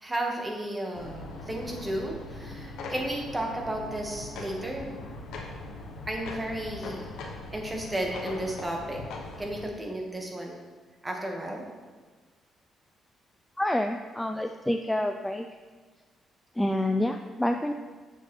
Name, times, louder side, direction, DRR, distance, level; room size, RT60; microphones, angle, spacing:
voice 1, 0.0-5.0 6.1-7.1 7.5-9.0 9.4-10.6 11.0-11.6, right 1 dB, 20° right, 0 dB, 1.4 m, -33 dB
sound 1, 0.9-9.7, left 2 dB, 85° left, 1.0 m, -41 dB
voice 2, 13.6-15.5 16.6-17.7, left 1 dB, 5° left, 5 dB, 0.3 m, -28 dB
7.6 x 6.5 x 3.2 m, 1.4 s
cardioid pair, 90°, 0 cm